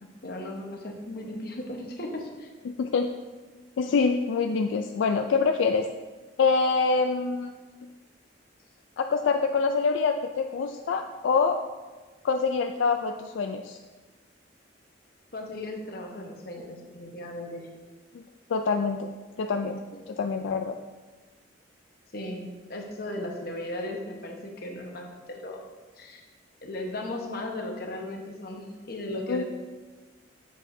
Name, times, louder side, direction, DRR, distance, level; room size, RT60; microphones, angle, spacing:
voice 1, 0.0-2.5 15.3-17.7 19.9-20.0 22.1-25.6 26.0-26.2 26.6-29.4, left 1 dB, 50° left, 1 dB, 1.0 m, -36 dB
voice 2, 2.6-3.1 3.8-5.9 6.4-7.5 9.0-11.6 12.2-13.8 18.1-18.2 18.5-19.1 19.4-19.8 20.1-20.8 29.3-29.4, left 4 dB, 75° left, 5 dB, 0.3 m, -25 dB
7.8 x 7.2 x 2.7 m, 1.3 s
head